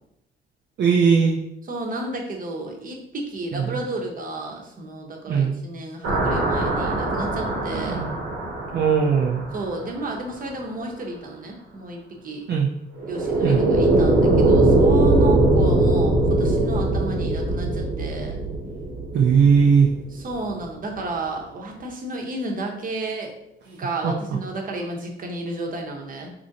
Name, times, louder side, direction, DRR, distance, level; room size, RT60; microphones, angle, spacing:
voice 1, 0.8-1.4 3.5-3.7 5.3-5.6 7.7-8.1 8.7-9.4 12.5-12.7 13.4-13.6 19.1-19.9 24.0-24.1, right 6 dB, 60° right, -1 dB, 0.5 m, -18 dB
voice 2, 1.6-8.0 9.5-12.4 13.0-18.3 20.1-23.3 23.6-26.3, right 2 dB, 45° right, 1 dB, 0.9 m, -32 dB
sound 1, 6.0-10.0 13.0-20.1, right 2 dB, 90° right, 1.1 m, -21 dB
3.1 x 2.6 x 3.9 m, 0.83 s
cardioid pair, 90°, 20 cm